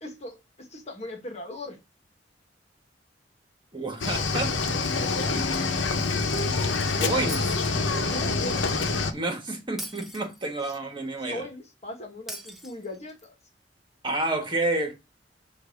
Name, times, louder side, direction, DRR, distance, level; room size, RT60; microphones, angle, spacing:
voice 1, 0.0-1.8 5.1-5.7 8.1-8.7 11.3-13.3, left 1 dB, 35° left, 1.6 m, -40 dB
voice 2, 3.7-4.5 5.3-5.5 6.9-7.5 9.1-11.5 14.0-14.9, right 2 dB, 25° right, 1.5 m, -29 dB
Cricket / Waves surf, 4.0-9.1, left 3 dB, 85° left, 1.0 m, -26 dB
Shatter, 7.3-8.3 9.8-10.8 12.3-13.3, right 1 dB, ahead, 0.8 m, -41 dB
8.0 x 2.8 x 5.9 m
head